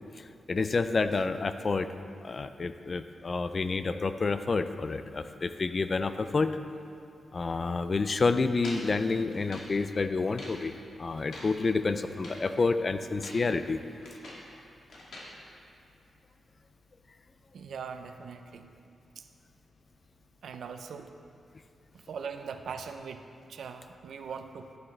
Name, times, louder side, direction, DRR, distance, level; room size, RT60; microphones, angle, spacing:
voice 1, 0.2-1.9 2.2-6.5 7.3-10.7 11.0-13.8, left 4 dB, 35° left, 10 dB, 0.4 m, -29 dB
sound 1, 8.6-9.8 10.2-10.6 11.1-11.6 12.0-12.5 13.0-13.5 13.8-14.5 14.9-15.3, left 1 dB, 75° left, 2.3 m, -46 dB
voice 2, 17.5-18.7 19.2-19.3 20.4-21.1 21.9-23.2 23.5-24.7, right 6 dB, 80° right, 7 dB, 0.6 m, -41 dB
11.5 x 11.0 x 3.3 m, 2.5 s
wide cardioid pair, 145°, 0 cm